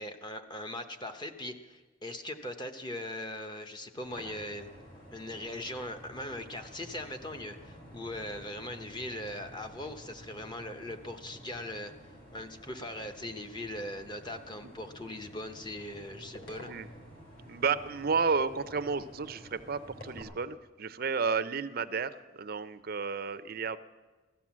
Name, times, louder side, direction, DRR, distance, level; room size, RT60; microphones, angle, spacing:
voice 1, 0.0-4.8 5.1-11.9 12.3-16.7, left 1 dB, 20° left, 6 dB, 0.9 m, -40 dB
sound 1, 4.0-20.2, equal, 50° left, 3.8 m, -50 dB
voice 2, 17.4-23.8, right 5 dB, 50° right, 12 dB, 0.5 m, -32 dB
16.0 x 12.5 x 7.3 m, 1.3 s
head